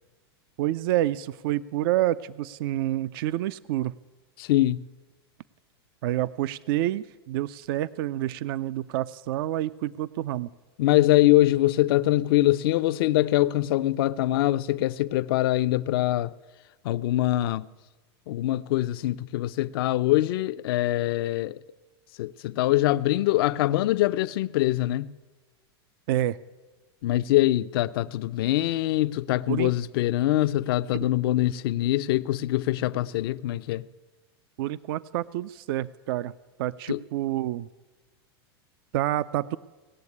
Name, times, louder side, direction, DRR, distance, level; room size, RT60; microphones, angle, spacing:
voice 1, 0.6-3.9 6.0-10.5 26.1-26.4 29.5-29.7 34.6-36.3 36.6-37.7 38.9-39.6, right 14 dB, 60° right, 0.4 m, -28 dB
voice 2, 4.4-4.8 10.8-16.3 16.8-17.7 18.3-21.6 22.2-25.1 27.0-33.9 36.9-37.0, left 15 dB, 65° left, 0.5 m, -23 dB
18.0 x 7.2 x 9.6 m
supercardioid pair, 135°, 13 cm